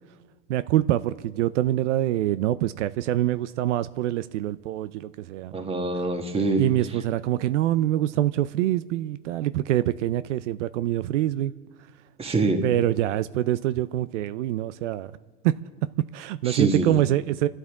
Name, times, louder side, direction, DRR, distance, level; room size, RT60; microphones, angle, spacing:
voice 1, 0.5-5.6 6.6-11.5 12.6-15.1 15.4-15.6 16.1-17.5, right 13 dB, 80° right, 15 dB, 0.6 m, -25 dB
voice 2, 5.5-6.7 12.2-12.6 16.4-17.0, right 3 dB, 15° right, 5 dB, 1.6 m, -25 dB
28.5 x 12.5 x 3.6 m, 1.5 s
supercardioid pair, 125°, 36 cm